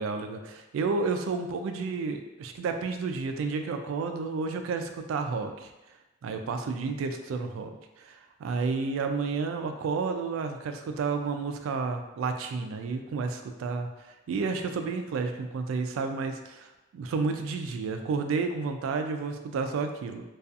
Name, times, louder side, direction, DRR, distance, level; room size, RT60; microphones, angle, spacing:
voice 1, 0.0-5.7 6.2-7.7 8.0-20.2, right 4 dB, 85° right, 7 dB, 0.3 m, -31 dB
2.4 x 2.3 x 2.6 m, 1.0 s
head